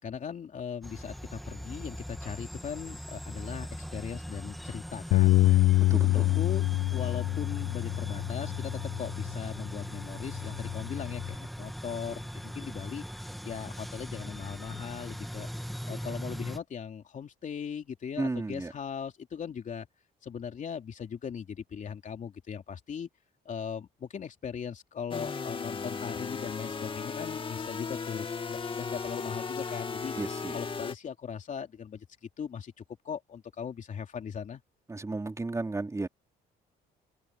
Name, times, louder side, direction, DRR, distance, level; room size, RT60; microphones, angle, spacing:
voice 1, 0.0-5.6 6.1-13.0 13.4-15.5 15.9-19.9 20.2-23.1 23.4-30.1 30.5-32.1 32.4-32.7 33.0-34.6, left 7 dB, 45° left, 3.3 m, -39 dB
sound 1, 0.8-16.6, equal, ahead, 1.9 m, -40 dB
Bass guitar, 5.1-9.6 10.2-11.3, left 17 dB, 70° left, 0.4 m, -26 dB
voice 2, 5.9-6.3 18.2-18.7 30.2-30.6 34.9-36.1, right 3 dB, 15° right, 3.5 m, -33 dB
sound 2, 25.1-30.9, left 5 dB, 30° left, 2.2 m, -36 dB
cardioid pair, 95°, 18 cm